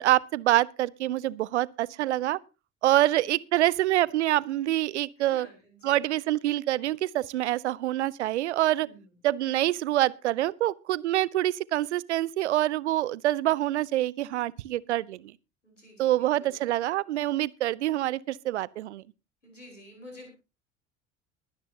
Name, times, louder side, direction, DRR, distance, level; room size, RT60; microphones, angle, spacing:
voice 1, 0.0-2.4 2.8-5.5 5.8-8.9 9.2-15.3 16.0-19.0, right 14 dB, 70° right, 0.6 m, -26 dB
voice 2, 5.2-6.0 8.8-9.1 15.6-16.6 19.4-20.3, left 1 dB, 90° left, 4.8 m, -50 dB
21.5 x 10.5 x 2.8 m
figure-of-eight pair, 60°, 36 cm